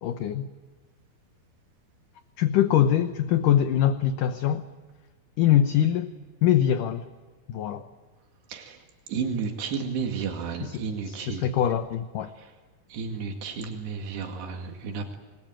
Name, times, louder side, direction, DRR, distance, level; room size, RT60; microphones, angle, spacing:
voice 1, 0.0-0.5 2.4-4.6 5.4-6.1 6.4-7.1 7.5-7.9 10.6-12.3, left 10 dB, 70° left, 9 dB, 2.2 m, -23 dB
voice 2, 9.1-11.5 12.9-15.2, right 5 dB, 90° right, 2 dB, 4.4 m, -32 dB
28.0 x 21.5 x 9.0 m, 1.3 s
omnidirectional pair, 4.6 m